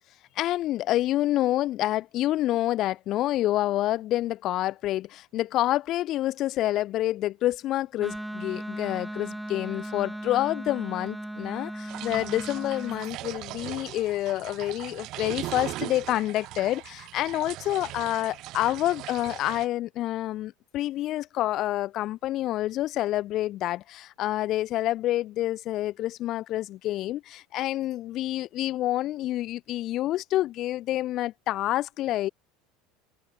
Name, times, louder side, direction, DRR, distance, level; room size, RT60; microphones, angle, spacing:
voice 1, 0.4-32.3, left 14 dB, 50° left, 0.4 m, -28 dB
Wind instrument woodwind instrument, 8.0-13.1, right 1 dB, 5° right, 0.9 m, -37 dB
sound 1, 11.9-19.7, right 17 dB, 55° right, 1.1 m, -39 dB
hypercardioid pair, 80°, 0 cm